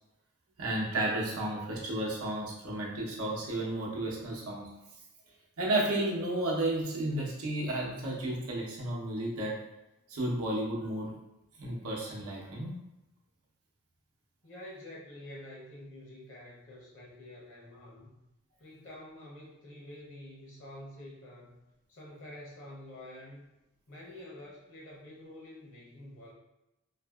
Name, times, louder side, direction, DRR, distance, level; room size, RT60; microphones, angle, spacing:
voice 1, 0.6-4.7 5.6-9.5 10.1-11.2 11.6-12.8, right 1 dB, 90° right, -3 dB, 0.7 m, -32 dB
voice 2, 14.4-18.1 18.6-21.6 21.9-23.4 23.9-26.3, left 1 dB, 60° left, -4 dB, 0.7 m, -48 dB
2.7 x 2.5 x 2.3 m, 0.94 s
head